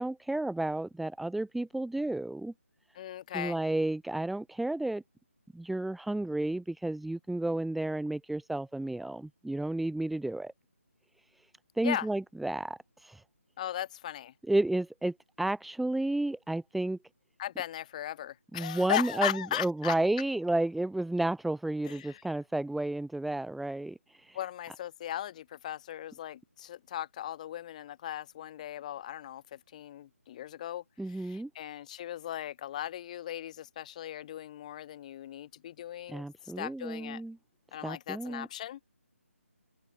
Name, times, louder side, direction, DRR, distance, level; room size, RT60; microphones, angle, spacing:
voice 1, 0.0-2.5 3.3-5.0 5.5-10.5 11.8-13.2 14.5-17.0 18.5-24.4 31.0-31.5 36.1-37.4 37.8-38.5, right 2 dB, ahead, 1.7 m, -32 dB
voice 2, 3.0-3.6 11.8-12.1 13.6-14.3 17.4-20.0 21.8-22.2 24.3-36.3 36.6-37.2 37.7-39.0, left 12 dB, 30° left, 5.2 m, -38 dB
figure-of-eight pair, 155°, 8 cm